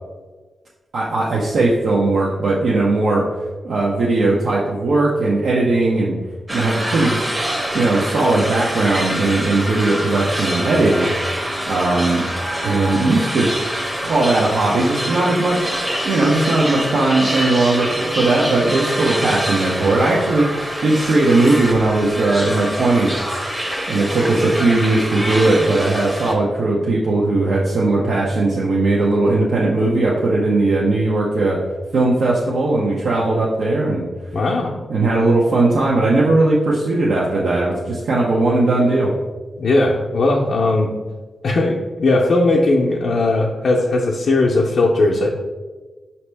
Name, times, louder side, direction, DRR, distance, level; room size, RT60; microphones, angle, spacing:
voice 1, 0.9-3.2 3.6-6.2 6.5-7.2 7.7-11.2 11.7-12.3 12.6-13.5 14.0-15.8 16.0-23.2 23.9-31.6 31.9-34.0 34.9-39.1, right 2 dB, 80° right, -4 dB, 0.6 m, -18 dB
sound 1, 6.5-26.3, equal, 15° right, 0.7 m, -25 dB
voice 2, 34.3-34.7 39.6-40.9 41.4-45.3, left 2 dB, 70° left, -3 dB, 0.5 m, -18 dB
5.2 x 2.8 x 3.3 m, 1.3 s
cardioid pair, 80°, 0 cm